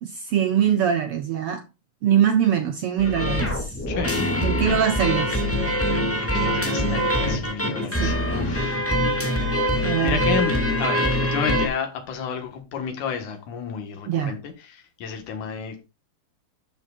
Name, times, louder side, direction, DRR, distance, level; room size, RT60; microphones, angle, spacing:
voice 1, 0.0-1.6 2.0-3.8 4.4-5.4 7.9-8.2 9.8-10.2 14.1-14.3, right 9 dB, 75° right, 1.3 m, -23 dB
sound 1, 3.0-11.7, equal, 5° left, 1.6 m, -23 dB
voice 2, 3.9-4.3 6.2-8.9 10.0-10.5 10.8-15.8, left 6 dB, 85° left, 3.0 m, -31 dB
12.0 x 7.2 x 2.4 m
omnidirectional pair, 3.4 m